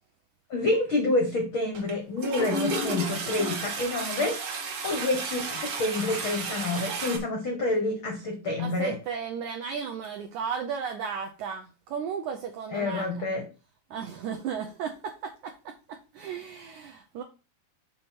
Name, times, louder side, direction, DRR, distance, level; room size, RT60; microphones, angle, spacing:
voice 1, 0.5-4.4 4.8-9.0 12.7-13.4, left 2 dB, 75° left, 2 dB, 1.1 m, -28 dB
Toilet flush, 1.7-1.9 2.2-7.2, right 3 dB, 50° right, 2.2 m, -32 dB
voice 2, 8.6-13.1 13.9-17.2, right 7 dB, 85° right, 3 dB, 1.7 m, -35 dB
6.6 x 3.7 x 5.9 m, 0.32 s
omnidirectional pair, 4.4 m